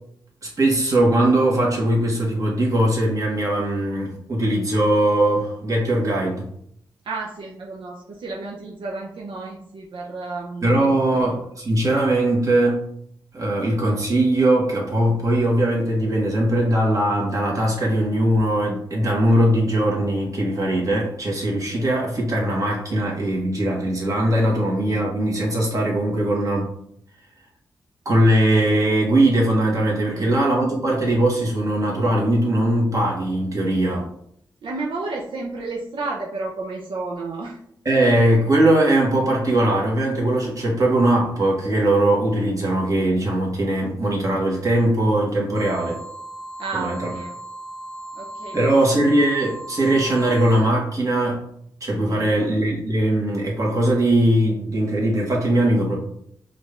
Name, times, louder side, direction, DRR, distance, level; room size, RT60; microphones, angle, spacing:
voice 1, 0.4-6.5 10.6-12.8 13.3-26.7 28.0-34.1 37.8-46.0 46.7-47.1 48.5-51.4 51.8-56.0, right 1 dB, 40° right, -3 dB, 1.6 m, -20 dB
voice 2, 7.0-11.2 30.0-30.3 34.6-37.6 46.6-47.4 48.1-48.6 52.0-52.5, right 3 dB, 80° right, -2 dB, 0.7 m, -32 dB
sound 1, 45.5-50.6, right 1 dB, 15° left, 0.8 m, -36 dB
5.1 x 2.6 x 3.5 m, 0.69 s
wide cardioid pair, 105°, 8 cm